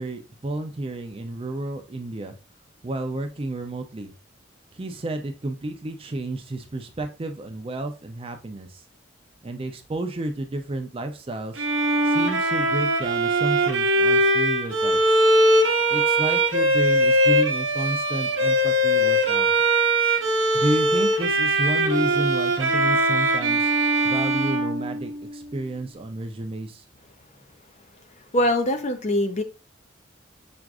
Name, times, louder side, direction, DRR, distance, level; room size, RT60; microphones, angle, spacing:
voice 1, 0.0-2.3 2.8-4.1 4.7-8.8 9.4-11.6 12.0-15.2 15.9-19.5 20.5-23.7 24.0-26.8, right 1 dB, 30° right, 6 dB, 0.5 m, -31 dB
Bowed string instrument, 11.6-25.5, right 1 dB, 85° right, 0.7 m, -21 dB
voice 2, 28.3-29.4, left 1 dB, 35° left, 7 dB, 0.5 m, -22 dB
5.9 x 2.5 x 2.3 m, 0.32 s
head